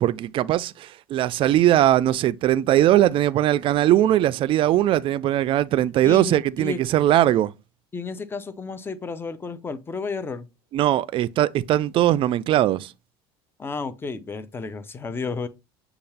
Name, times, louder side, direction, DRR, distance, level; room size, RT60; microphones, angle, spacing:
voice 1, 0.0-7.5 10.7-12.9, right 13 dB, 45° right, 0.3 m, -20 dB
voice 2, 6.0-6.8 7.9-10.5 13.6-15.5, left 4 dB, 20° left, 0.5 m, -32 dB
6.7 x 2.4 x 3.3 m
supercardioid pair, 95°, 12 cm